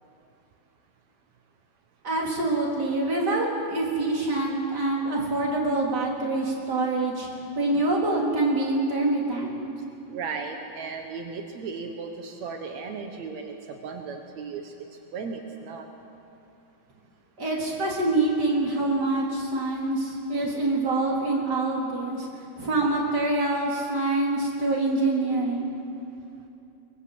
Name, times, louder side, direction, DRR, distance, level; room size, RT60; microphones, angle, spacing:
voice 1, 2.0-7.3 7.6-9.6 17.4-22.3 22.6-25.7, right 2 dB, 25° right, -2 dB, 3.7 m, -25 dB
voice 2, 10.1-14.7 15.1-15.9, right 5 dB, 75° right, 4 dB, 1.6 m, -36 dB
23.5 x 21.5 x 8.0 m, 2.7 s
omnidirectional pair, 5.1 m